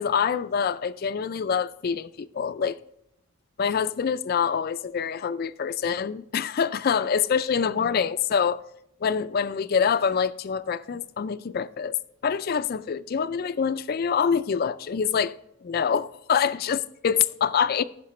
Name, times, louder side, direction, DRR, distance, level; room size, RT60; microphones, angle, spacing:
voice 1, 0.0-2.8 3.6-8.6 9.0-12.0 12.2-15.3 15.6-17.8, left 7 dB, 45° left, 0.3 m, -25 dB
15.5 x 5.7 x 3.1 m
head